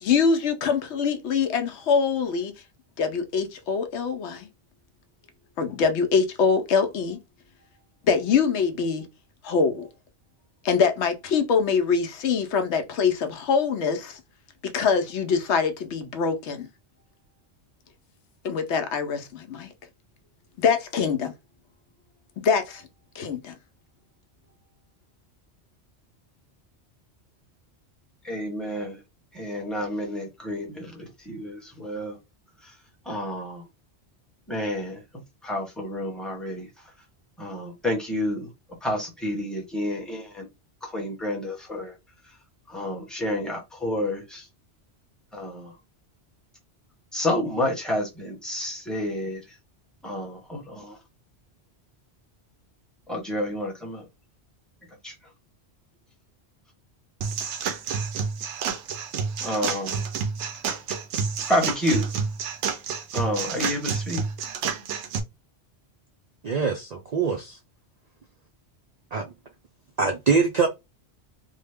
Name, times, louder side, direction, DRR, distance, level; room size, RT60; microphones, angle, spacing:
voice 1, 0.0-2.5 3.0-4.5 5.6-7.2 8.0-9.1 9.4-9.9 10.6-14.2 14.6-16.7 18.4-19.7 20.6-21.3 22.4-22.8 23.1-23.5, left 5 dB, 80° left, 0.9 m, -24 dB
voice 2, 28.2-29.0 29.3-32.2 33.1-33.6 34.5-35.0 35.4-36.7 37.4-38.5 38.8-40.5 40.8-41.9 42.7-44.4 45.3-45.7 47.1-49.4 50.0-51.0 53.1-54.0 55.0-55.1 59.4-60.0 61.5-62.1 63.1-64.2, left 1 dB, ahead, 0.8 m, -29 dB
sound 1, 57.2-65.2, right 6 dB, 85° right, 0.9 m, -29 dB
voice 3, 66.4-67.6 69.1-69.3 70.0-70.7, right 5 dB, 55° right, 0.4 m, -23 dB
3.2 x 2.1 x 3.4 m
omnidirectional pair, 1.1 m